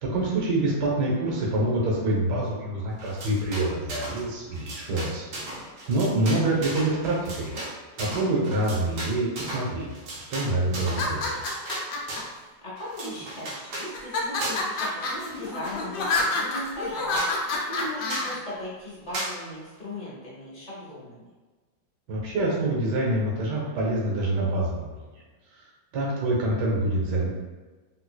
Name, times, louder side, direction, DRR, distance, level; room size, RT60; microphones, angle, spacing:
voice 1, 0.0-5.2 5.9-7.5 8.0-11.4 22.1-25.0 25.9-27.3, right 1 dB, 65° right, -4 dB, 1.5 m, -26 dB
sound 1, 3.0-4.2 4.5-12.4 12.8-13.9 14.4-14.8 15.1-16.0 16.5-16.6 16.8-16.9 17.1-17.4 18.1-18.3 19.1-19.4, right 1 dB, 90° right, 1.6 m, -36 dB
voice 2, 6.9-7.7 12.6-17.2 17.6-21.2, left 1 dB, 30° left, -7 dB, 0.9 m, -38 dB
sound 2, 10.8-12.2 12.9-13.5 13.9-18.3, left 3 dB, 70° left, 0.8 m, -28 dB
3.9 x 2.6 x 2.3 m, 1.2 s
omnidirectional pair, 2.0 m